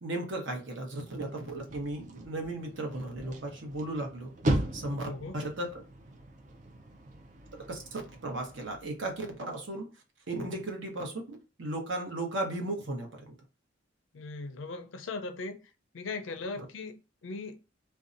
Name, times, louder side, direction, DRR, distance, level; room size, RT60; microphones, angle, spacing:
voice 1, 0.0-4.3 4.7-5.1 5.3-5.7 7.7-9.9 10.3-13.3 16.6-16.7, right 2 dB, 75° right, 0.9 m, -36 dB
sound 1, 1.2-9.4, right 1 dB, 40° right, 0.4 m, -38 dB
voice 2, 5.0-5.4 14.1-15.6 15.9-17.6, left 3 dB, 85° left, 0.5 m, -39 dB
2.6 x 2.2 x 2.5 m
head